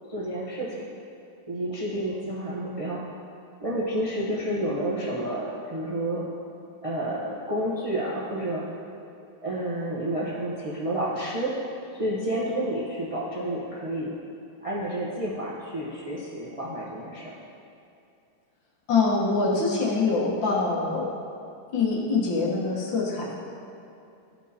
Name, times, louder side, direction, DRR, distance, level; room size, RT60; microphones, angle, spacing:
voice 1, 0.1-0.9 1.5-3.0 3.6-6.2 6.8-8.9 9.4-11.6 11.9-14.1 14.6-17.3, right 1 dB, 65° right, -7 dB, 0.3 m, -30 dB
voice 2, 18.9-21.1 21.7-23.3, left 3 dB, 75° left, -4 dB, 1.8 m, -24 dB
13.0 x 4.5 x 2.7 m, 2.6 s
omnidirectional pair, 2.1 m